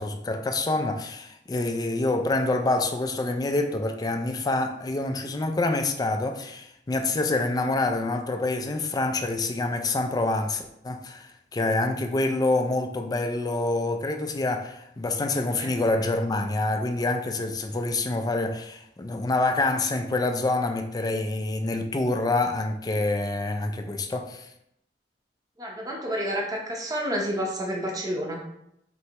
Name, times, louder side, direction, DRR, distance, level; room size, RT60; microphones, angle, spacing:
voice 1, 0.0-24.5, left 2 dB, 20° left, 0.3 m, -26 dB
voice 2, 25.6-28.4, equal, 20° right, 0.7 m, -29 dB
4.4 x 3.2 x 2.9 m
head